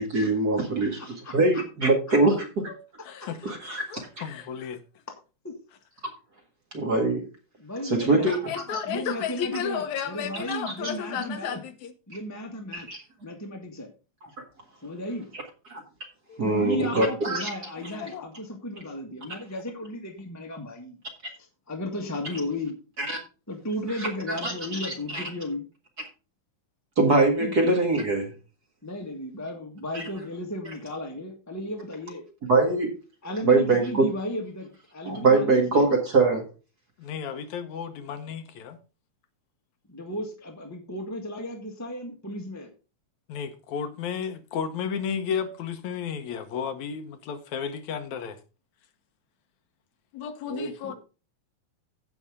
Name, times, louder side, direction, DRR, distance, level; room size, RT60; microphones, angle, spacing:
voice 1, 0.0-2.7 3.4-4.1 6.7-7.3 7.8-8.5 12.7-13.0 15.7-15.8 16.4-17.5 23.0-23.2 24.0-24.1 24.4-24.5 24.8-25.2 27.0-28.3 29.9-30.0 32.5-33.0 33.4-34.1 35.0-36.4, right 3 dB, 35° right, 1.9 m, -23 dB
voice 2, 0.7-1.3 3.2-3.3 5.1-5.2 5.4-5.6 7.6-8.3 8.8-11.6 12.1-12.9 13.2-13.9 14.8-15.3 16.4-21.0 21.7-22.8 23.5-25.7 27.4-27.5 28.8-32.2 33.2-35.9 39.9-42.7 50.5-50.9, left 1 dB, 15° left, 0.6 m, -34 dB
voice 3, 3.1-4.8 8.3-11.9 16.3-16.6 17.9-18.3 37.0-38.8 43.3-48.4 50.1-50.9, left 7 dB, 75° left, 2.2 m, -33 dB
16.0 x 5.5 x 3.6 m
omnidirectional pair, 3.5 m